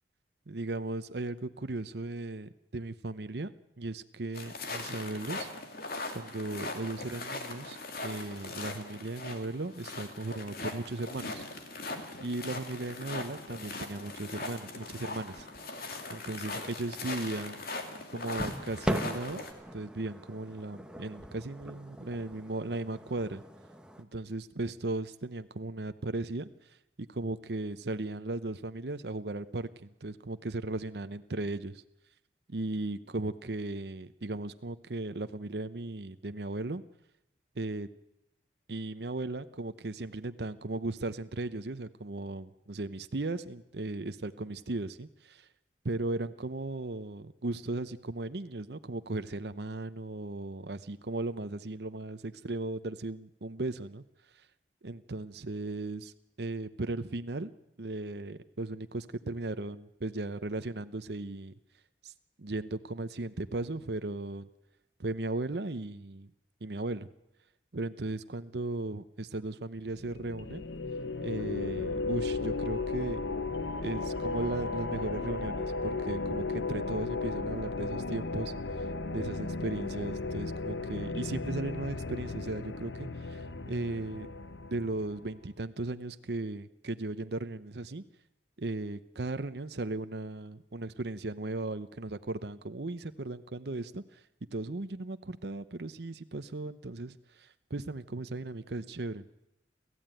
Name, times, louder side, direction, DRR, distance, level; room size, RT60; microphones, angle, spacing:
voice 1, 0.5-3.5 3.8-5.5 6.1-11.4 12.2-15.5 16.1-17.6 18.1-19.5 19.7-23.4 24.0-31.8 32.5-36.8 37.6-37.9 38.7-45.5 45.8-54.0 54.8-56.1 56.4-57.5 57.8-61.5 62.0-62.1 62.4-64.5 65.0-66.3 66.6-67.1 67.7-70.7 71.2-73.2 73.8-78.5 79.1-84.3 84.7-88.0 88.6-94.2 94.5-99.2, right 2 dB, 65° right, 11 dB, 0.8 m, -36 dB
sound 1, 4.3-19.5, left 3 dB, 55° left, 2.7 m, -40 dB
sound 2, 13.8-24.0, equal, 5° right, 1.2 m, -41 dB
sound 3, 69.9-85.3, left 3 dB, 80° left, 1.0 m, -35 dB
29.0 x 14.0 x 9.1 m, 0.90 s
head